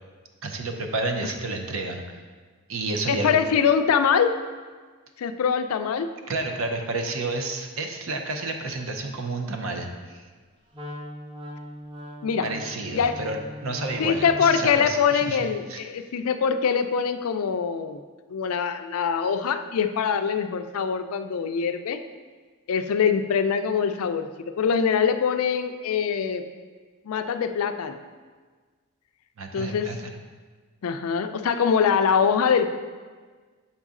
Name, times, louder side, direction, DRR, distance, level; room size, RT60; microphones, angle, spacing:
voice 1, 0.4-2.2 2.7-3.4 6.3-10.3 12.4-15.4 15.7-15.8 29.4-30.2, right 2 dB, 70° right, 4 dB, 0.7 m, -30 dB
voice 2, 3.1-4.4 5.2-6.1 12.2-12.5 12.9-13.2 14.0-18.0 18.3-22.0 22.7-26.4 27.1-28.0 29.5-29.9 30.8-32.8, left 6 dB, 85° left, 9 dB, 0.4 m, -23 dB
Wind instrument woodwind instrument, 10.7-14.8, equal, 25° right, 0.7 m, -39 dB
7.0 x 4.0 x 3.6 m, 1.5 s
head